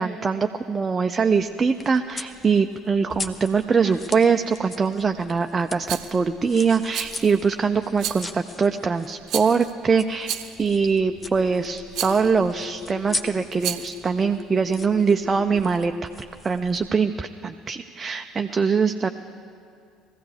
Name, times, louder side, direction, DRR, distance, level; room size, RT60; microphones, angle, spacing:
voice 1, 0.0-15.9 16.4-19.1, right 5 dB, 30° right, 6 dB, 0.5 m, -23 dB
sound 1, 1.3-16.9, left 3 dB, 25° left, 0.9 m, -40 dB
Rattle, 5.9-6.2 6.9-7.4 8.0-8.4 9.3-9.7 10.2-10.7 11.9-12.3 13.5-14.0, right 10 dB, 55° right, 0.8 m, -31 dB
sound 2, 11.1-16.2, left 7 dB, 55° left, 0.4 m, -40 dB
21.0 x 15.0 x 3.4 m, 2.4 s
figure-of-eight pair, 60°, 0 cm